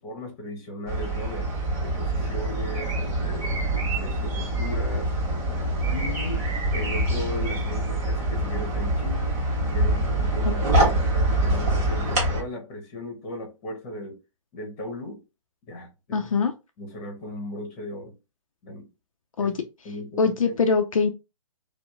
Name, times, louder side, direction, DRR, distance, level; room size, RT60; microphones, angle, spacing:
voice 1, 0.0-1.5 1.8-3.6 4.0-5.1 5.9-9.2 9.6-14.2 14.5-15.2 15.7-16.2 16.8-18.2 18.6-18.9 19.4-19.5 19.8-20.2, left 1 dB, 25° left, 0.9 m, -37 dB
sound 1, 0.9-12.4, right 1 dB, 30° right, 1.1 m, -25 dB
voice 2, 16.1-16.5 19.4-19.5 20.2-21.1, left 5 dB, 75° left, 0.4 m, -22 dB
2.7 x 2.0 x 2.4 m
figure-of-eight pair, 135°, 17 cm